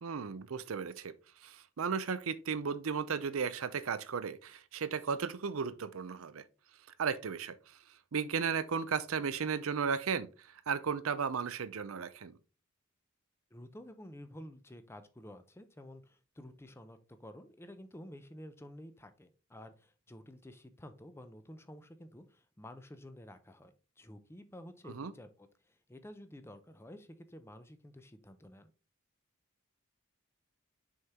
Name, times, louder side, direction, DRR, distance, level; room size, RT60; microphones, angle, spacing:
voice 1, 0.0-6.4 7.0-12.3 24.9-25.1, right 6 dB, 80° right, 0.6 m, -35 dB
voice 2, 13.5-28.7, left 1 dB, 10° left, 0.6 m, -51 dB
6.4 x 4.4 x 3.5 m
head